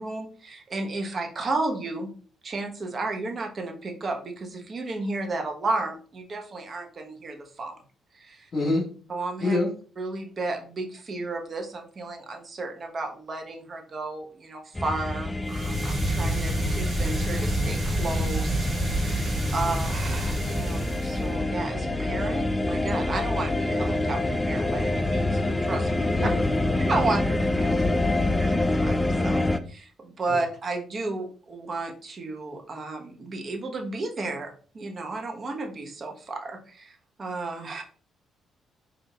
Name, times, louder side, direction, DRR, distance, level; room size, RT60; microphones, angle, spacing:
voice 1, 0.0-2.1 2.4-7.7 8.1-8.5 9.1-9.6 10.0-26.3 26.9-27.8 28.4-37.8, right 3 dB, 40° right, 4 dB, 1.0 m, -33 dB
voice 2, 8.5-8.9 9.4-9.7 26.1-26.5 26.8-26.9 27.6-28.2, left 2 dB, 40° left, -6 dB, 1.9 m, -27 dB
sound 1, 14.8-29.6, left 2 dB, 15° left, 0.3 m, -27 dB
sound 2, 15.4-21.4, right 1 dB, 25° right, 1.7 m, -28 dB
4.6 x 2.7 x 2.7 m, 0.41 s
cardioid pair, 90°, 0 cm